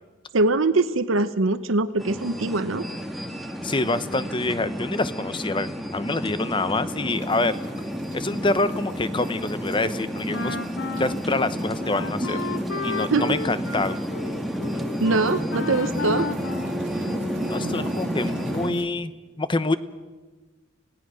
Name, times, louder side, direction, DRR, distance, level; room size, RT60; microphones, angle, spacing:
voice 1, 0.3-2.8 13.1-13.2 15.0-16.3, right 3 dB, 90° right, 11 dB, 0.9 m, -22 dB
sound 1, 2.0-18.7, equal, ahead, 1.4 m, -31 dB
voice 2, 3.6-7.6 8.1-10.6 10.9-12.4 12.8-14.0 17.5-19.8, left 2 dB, 25° left, 13 dB, 0.9 m, -26 dB
sound 2, 7.2-18.9, right 2 dB, 65° right, 1.7 m, -42 dB
Wind instrument woodwind instrument, 10.3-17.5, left 3 dB, 85° left, 1.2 m, -33 dB
27.0 x 17.5 x 6.4 m, 1.3 s
head